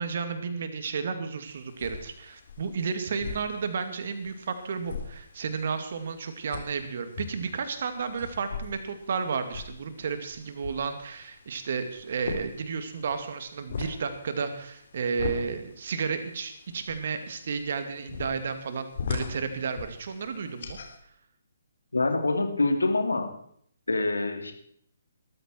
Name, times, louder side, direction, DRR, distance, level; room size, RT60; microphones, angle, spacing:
voice 1, 0.0-20.8, right 5 dB, 50° right, 8 dB, 2.4 m, -32 dB
sound 1, 1.5-21.0, left 5 dB, 50° left, 3.6 m, -41 dB
voice 2, 21.9-23.3 23.9-24.5, left 2 dB, 75° left, 4 dB, 3.3 m, -25 dB
20.0 x 14.0 x 4.6 m, 0.66 s
figure-of-eight pair, 135°, 0 cm